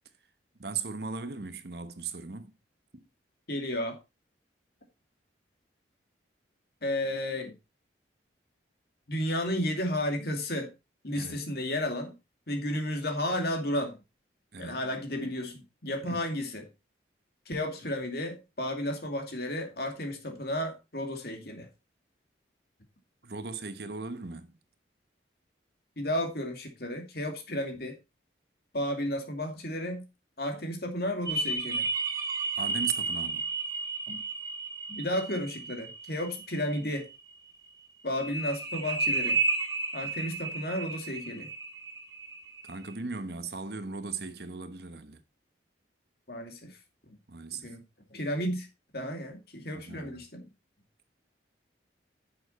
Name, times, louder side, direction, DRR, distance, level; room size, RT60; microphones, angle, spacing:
voice 1, 0.6-2.5 2.9-3.0 11.1-11.5 14.5-14.8 16.0-16.2 23.2-24.5 32.6-33.5 42.6-45.2 47.3-47.7 49.7-50.3, right 4 dB, 60° right, 1.1 m, -38 dB
voice 2, 3.5-4.0 6.8-7.5 9.1-10.7 11.0-12.1 12.5-14.0 14.6-16.7 17.5-21.7 26.0-27.9 28.7-30.0 30.4-31.9 34.1-34.2 34.9-37.1 38.0-39.4 39.9-41.5 46.3-46.8 47.1-47.2 47.5-47.8 48.1-48.7 48.9-50.4, left 1 dB, 55° left, 2.5 m, -33 dB
sound 1, 31.3-36.8 38.1-42.9, right 3 dB, 20° right, 2.2 m, -32 dB
9.9 x 6.8 x 4.2 m
head